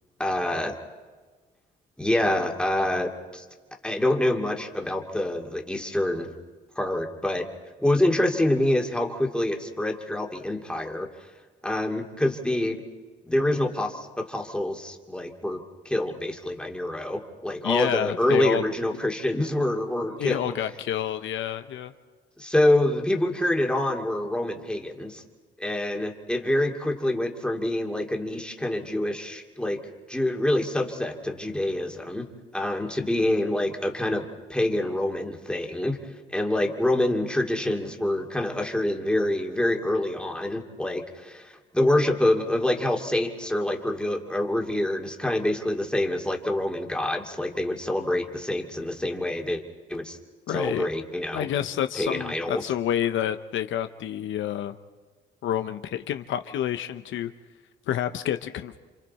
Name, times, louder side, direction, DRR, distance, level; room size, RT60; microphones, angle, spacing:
voice 1, 0.2-0.8 2.0-3.4 3.8-6.3 6.8-7.5 7.8-11.1 11.6-12.8 13.3-20.6 22.4-25.2 25.6-29.8 30.1-32.3 32.5-36.0 36.3-49.6 49.9-50.2 50.5-51.5 52.0-52.7, left 1 dB, 5° left, 2 dB, 2.4 m, -26 dB
voice 2, 17.6-18.6 20.0-21.9 50.5-50.9 51.3-54.7 55.4-57.3 57.9-58.8, left 10 dB, 75° left, 8 dB, 0.9 m, -28 dB
29.0 x 26.0 x 4.3 m, 1.4 s
cardioid pair, 90°, 20 cm